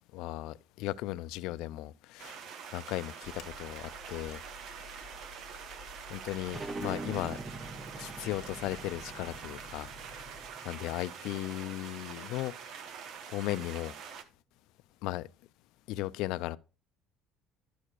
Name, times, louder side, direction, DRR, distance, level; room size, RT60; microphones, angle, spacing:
voice 1, 0.1-2.4 2.7-4.4 4.8-4.9 6.1-7.4 8.0-9.9 10.6-12.5 13.3-13.9 15.0-15.3 15.9-16.6, left 17 dB, 75° left, 0.3 m, -36 dB
sound 1, 2.2-14.2, right 7 dB, 55° right, 0.9 m, -45 dB
sound 2, 3.2-10.5, left 3 dB, 55° left, 1.4 m, -53 dB
sound 3, 6.5-11.8, right 3 dB, 20° right, 0.6 m, -44 dB
12.0 x 6.4 x 2.4 m
cardioid pair, 125°, 0 cm